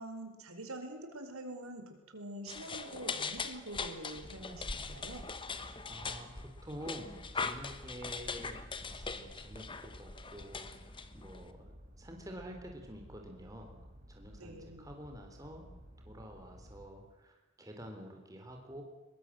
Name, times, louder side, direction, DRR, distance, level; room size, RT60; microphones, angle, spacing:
voice 1, 0.0-5.2 14.4-14.9, right 1 dB, 80° right, 6 dB, 4.5 m, -45 dB
sound 1, 2.5-11.5, left 4 dB, 25° left, 1.2 m, -41 dB
sound 2, 4.5-16.9, equal, 30° right, 3.7 m, -55 dB
voice 2, 5.5-10.7 11.1-13.8 14.1-15.7 16.1-18.8, equal, 15° right, 2 dB, 3.7 m, -48 dB
23.0 x 21.0 x 7.7 m, 1.1 s
head